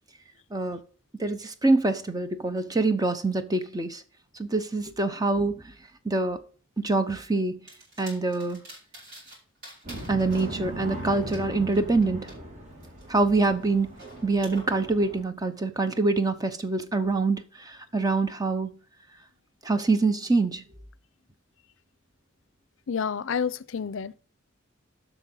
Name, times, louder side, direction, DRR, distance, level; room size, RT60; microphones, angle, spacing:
voice 1, 1.2-4.0 4.4-5.6 6.0-6.4 6.8-7.6 8.0-8.6 10.1-12.3 13.1-13.9 14.2-18.8 19.6-20.6, right 3 dB, 20° right, 0.7 m, -25 dB
sound 1, 7.7-9.4 9.6-12.4 12.8-14.6, right 2 dB, 55° right, 5.3 m, -47 dB
sound 2, 9.8-15.2, right 1 dB, 35° right, 2.4 m, -39 dB
voice 2, 22.9-24.1, left 6 dB, 75° left, 0.5 m, -29 dB
8.2 x 6.0 x 5.4 m
head